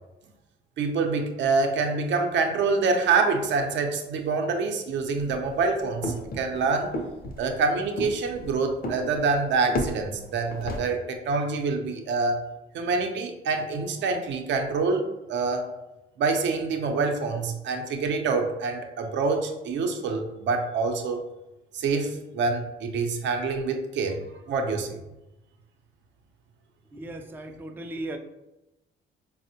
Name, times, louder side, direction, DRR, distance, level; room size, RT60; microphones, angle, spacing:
voice 1, 0.8-6.9 7.4-12.4 12.7-15.6 16.2-21.2 21.7-24.2 24.5-25.0, right 4 dB, 70° right, 4 dB, 0.5 m, -26 dB
sound 1, 5.2-10.8, left 1 dB, 50° left, 0.6 m, -34 dB
voice 2, 26.9-28.2, right 1 dB, 10° right, 5 dB, 0.3 m, -36 dB
4.2 x 2.0 x 2.7 m, 0.96 s
cardioid pair, 90°, 20 cm